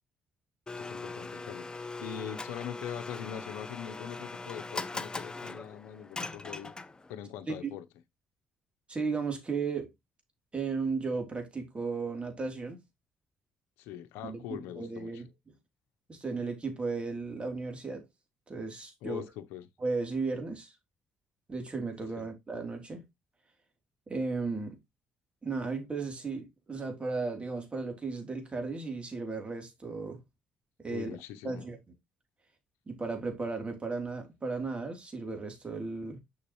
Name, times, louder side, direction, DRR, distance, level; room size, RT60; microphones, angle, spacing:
Domestic sounds home sounds, 0.7-7.2, left 3 dB, 20° left, 0.8 m, -40 dB
voice 1, 0.8-6.7 7.1-7.8 13.8-15.1 19.0-19.6 22.2-22.3 30.9-31.7, left 10 dB, 85° left, 0.8 m, -42 dB
voice 2, 8.9-9.9 10.5-12.8 14.2-15.3 16.1-18.0 18.5-19.2 19.8-20.7 21.5-23.0 24.1-24.8 25.4-30.2 30.8-31.1 31.4-31.8 32.9-36.2, right 4 dB, 30° right, 3.2 m, -35 dB
6.7 x 6.3 x 3.1 m
supercardioid pair, 65°, 4 cm